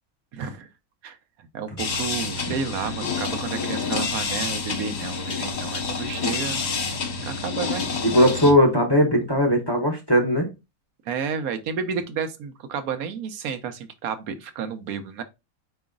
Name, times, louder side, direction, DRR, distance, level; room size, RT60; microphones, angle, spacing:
voice 1, 0.3-0.7 1.0-1.2 1.5-6.6 7.2-7.9 11.1-15.2, right 6 dB, 80° right, 1.1 m, -31 dB
sound 1, 1.8-8.5, left 4 dB, 50° left, 1.1 m, -28 dB
voice 2, 8.0-10.5, equal, 20° left, 0.8 m, -19 dB
4.8 x 3.0 x 3.7 m
omnidirectional pair, 1.5 m